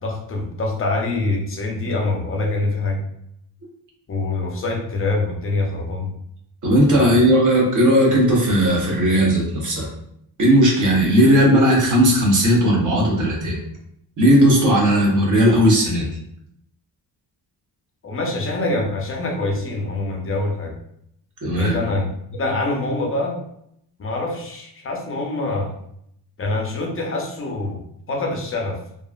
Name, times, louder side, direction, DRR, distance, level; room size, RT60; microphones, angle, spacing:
voice 1, 0.0-3.0 4.1-6.1 6.9-7.2 18.0-20.8 21.6-23.4 24.0-25.7 26.4-28.8, left 2 dB, 35° left, 0 dB, 0.5 m, -25 dB
voice 2, 6.6-9.9 10.4-13.6 14.2-16.1 21.4-21.8, equal, 45° right, -2 dB, 0.9 m, -16 dB
2.9 x 2.4 x 2.3 m, 0.74 s
wide cardioid pair, 170°, 41 cm